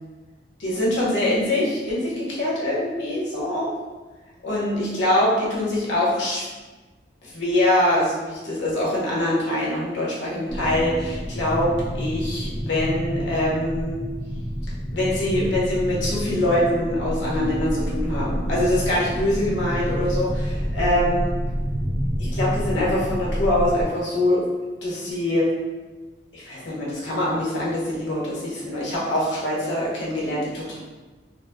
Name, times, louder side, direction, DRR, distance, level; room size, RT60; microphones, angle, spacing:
voice 1, 0.6-3.7 4.4-6.5 7.2-14.0 14.9-20.3 20.7-21.3 22.2-24.4 24.8-25.5 26.3-30.8, left 1 dB, 90° left, -6 dB, 0.9 m, -24 dB
sound 1, 10.5-23.8, equal, ahead, 0.4 m, -28 dB
3.8 x 2.1 x 2.2 m, 1.2 s
head